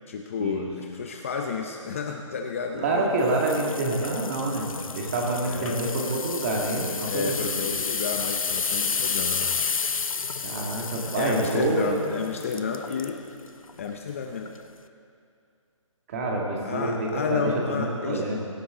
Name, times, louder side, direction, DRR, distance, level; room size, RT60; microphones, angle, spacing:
voice 1, 0.1-3.1 5.4-5.8 7.0-9.7 10.8-13.2 13.8-14.5 16.6-18.2, left 5 dB, 25° left, 3 dB, 0.6 m, -31 dB
voice 2, 2.7-7.7 10.4-12.0 16.1-18.4, right 2 dB, 25° right, -1 dB, 2.2 m, -27 dB
sound 1, 3.3-13.2 13.7-13.9 14.5-14.6, left 5 dB, 85° left, 0.9 m, -31 dB
17.5 x 17.5 x 3.8 m, 2.4 s
hypercardioid pair, 165°, 17 cm